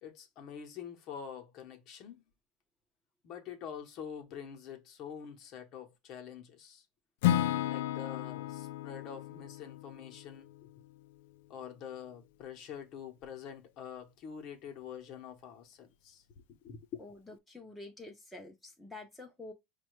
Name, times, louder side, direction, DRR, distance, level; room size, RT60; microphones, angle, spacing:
voice 1, 0.0-2.2 3.2-6.8 7.6-10.7 11.5-17.0, left 8 dB, 40° left, 0.8 m, -46 dB
Acoustic guitar / Strum, 7.2-11.3, left 12 dB, 80° left, 0.3 m, -34 dB
voice 2, 17.0-19.5, left 2 dB, 5° left, 0.6 m, -48 dB
5.3 x 2.2 x 3.0 m
cardioid pair, 170°, 0 cm